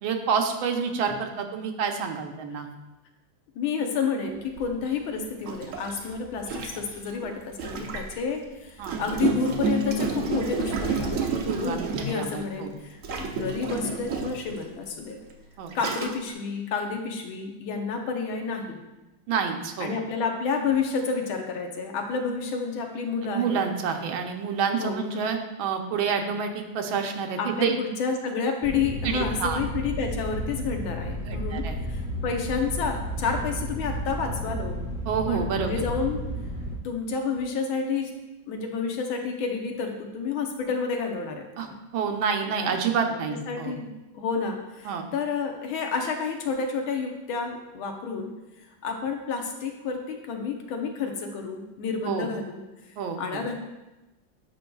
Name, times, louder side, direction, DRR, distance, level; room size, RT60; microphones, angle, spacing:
voice 1, 0.0-2.7 8.8-9.0 11.3-12.7 15.6-15.7 19.3-19.9 23.3-27.7 29.0-29.6 31.2-31.8 35.1-35.7 41.6-41.7 41.9-43.7 44.8-45.1 52.1-52.3 53.0-53.4, right 6 dB, 85° right, 5 dB, 1.5 m, -28 dB
voice 2, 3.5-15.2 15.7-18.8 19.8-23.6 24.8-25.0 27.4-34.8 35.3-36.2 36.8-38.1 38.5-41.7 42.5-42.8 43.1-48.3 48.8-52.6 53.2-53.6, left 5 dB, 85° left, 3 dB, 1.6 m, -30 dB
Gurgling, 4.6-4.7 5.4-8.2 8.8-12.4 13.0-14.5 15.2-15.3 15.7-16.3, right 4 dB, 70° right, 0.7 m, -30 dB
sound 1, 28.6-36.8, equal, 10° right, 0.4 m, -32 dB
9.2 x 5.3 x 2.3 m, 1.0 s
omnidirectional pair, 2.2 m